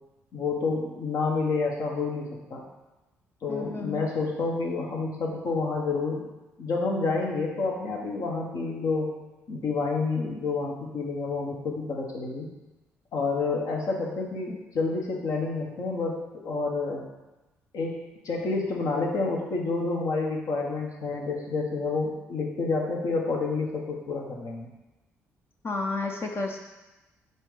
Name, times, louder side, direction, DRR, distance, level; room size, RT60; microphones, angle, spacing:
voice 1, 0.3-2.6 3.4-6.2 6.6-9.1 9.5-12.5 13.1-17.1 17.7-24.7, left 3 dB, 55° left, -1 dB, 1.4 m, -29 dB
voice 2, 3.5-4.1 14.5-14.6 25.6-26.6, left 3 dB, 35° left, 0 dB, 1.0 m, -32 dB
6.3 x 4.1 x 5.0 m, 1.1 s
figure-of-eight pair, 45°, 7 cm